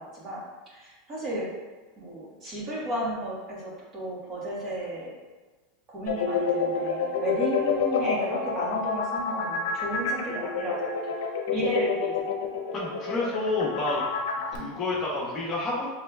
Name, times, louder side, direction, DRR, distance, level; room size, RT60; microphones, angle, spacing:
voice 1, 0.0-1.5 2.0-5.1 5.9-10.9 11.5-12.2 14.5-14.7, right 1 dB, 30° right, -6 dB, 1.4 m, -33 dB
sound 1, 6.1-14.6, left 6 dB, 80° left, 0.6 m, -28 dB
voice 2, 12.7-14.0 14.5-15.9, left 2 dB, 30° left, -5 dB, 1.2 m, -29 dB
5.6 x 3.2 x 2.3 m, 1.3 s
supercardioid pair, 135°, 0 cm